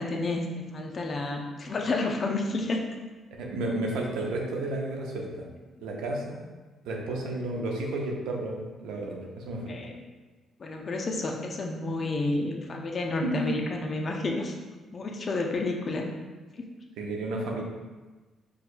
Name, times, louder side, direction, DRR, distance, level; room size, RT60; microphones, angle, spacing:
voice 1, 0.0-2.8 9.7-10.0 10.6-14.5 14.9-16.1 16.5-16.6, left 2 dB, 40° left, 1 dB, 0.5 m, -30 dB
voice 2, 3.4-5.5 5.8-6.5 6.8-9.7 13.2-13.6 17.0-17.6, right 2 dB, 90° right, 0 dB, 0.5 m, -32 dB
4.6 x 2.2 x 2.5 m, 1.2 s
cardioid pair, 90°, 0 cm